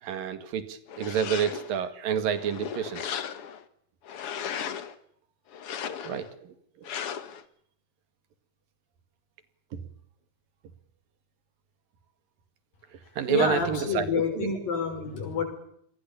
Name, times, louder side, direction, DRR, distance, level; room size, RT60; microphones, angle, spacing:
voice 1, 0.0-3.1 6.0-6.9 9.7-9.8 12.9-14.5, right 8 dB, 80° right, 12 dB, 3.7 m, -29 dB
sound 1, 0.9-1.8 2.3-3.6 4.0-4.9 5.5-6.3 6.8-7.4, left 8 dB, 50° left, 2.0 m, -36 dB
voice 2, 13.0-15.4, left 5 dB, 80° left, 6 dB, 7.6 m, -28 dB
28.5 x 22.0 x 7.0 m, 0.69 s
omnidirectional pair, 4.0 m